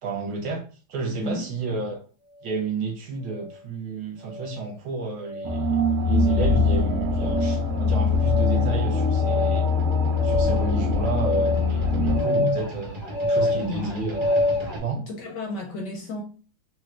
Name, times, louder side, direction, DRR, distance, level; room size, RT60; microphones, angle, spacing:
voice 1, 0.0-0.6 0.9-2.0 2.4-9.7 10.2-13.0 13.2-14.4 14.8-15.1, right 4 dB, 70° right, 1.3 m, -31 dB
sound 1, 3.3-3.5 4.2-4.6 5.2-5.6 6.2-6.6 7.2-7.6 8.2-14.8, left 1 dB, 55° right, 1.7 m, -28 dB
sound 2, 5.4-12.2, left 3 dB, 90° right, 1.5 m, -22 dB
voice 2, 11.9-12.6 13.6-13.9 15.1-16.2, left 3 dB, 70° left, 1.0 m, -32 dB
4.1 x 2.2 x 2.3 m
omnidirectional pair, 2.2 m